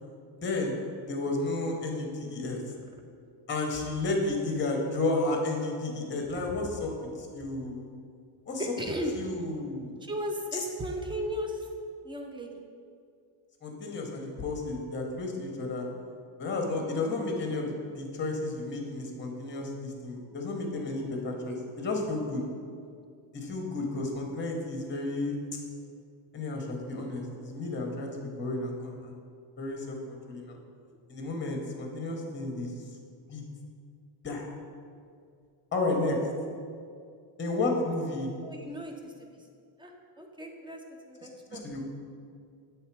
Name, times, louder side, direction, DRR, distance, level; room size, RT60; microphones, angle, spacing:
voice 1, 0.4-0.8 1.1-2.6 3.5-6.9 7.2-7.9 8.5-8.8 9.1-9.9 10.5-10.6 13.6-15.9 16.4-22.4 23.3-25.6 26.3-29.2 29.6-30.6 31.1-32.7 33.3-33.4 34.2-34.5 35.7-36.2 37.4-38.3 41.5-41.8, left 2 dB, 25° left, 1 dB, 0.9 m, -32 dB
voice 2, 8.6-9.1 10.0-11.7 12.0-12.5 38.4-39.1 39.8-39.9 40.2-40.8 41.1-41.6, equal, 10° right, 2 dB, 0.4 m, -35 dB
7.1 x 3.3 x 4.6 m, 2.3 s
cardioid pair, 130°, 49 cm